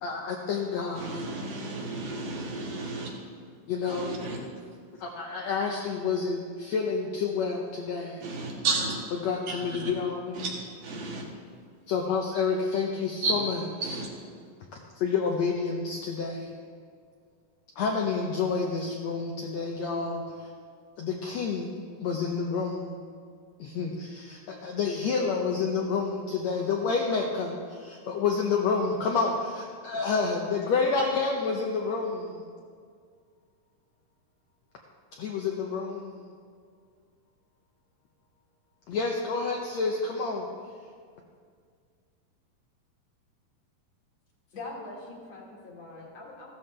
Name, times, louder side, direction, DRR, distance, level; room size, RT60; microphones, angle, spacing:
voice 1, 0.0-1.2 3.7-4.2 5.0-8.3 9.2-10.4 11.0-11.1 11.9-14.0 14.9-16.5 17.8-20.5 21.0-21.7 22.0-23.0 23.6-32.4 35.1-36.3 38.9-40.5, left 5 dB, 75° left, 0 dB, 1.6 m, -29 dB
voice 2, 1.0-3.1 3.9-4.4 8.2-9.0 9.5-9.9 10.3-10.5 10.8-11.3 13.2-13.4 13.8-14.1, right 3 dB, 70° right, -2 dB, 3.2 m, -32 dB
voice 3, 44.5-46.5, left 2 dB, 55° left, -2 dB, 2.4 m, -42 dB
15.0 x 13.0 x 3.3 m, 2.1 s
omnidirectional pair, 4.0 m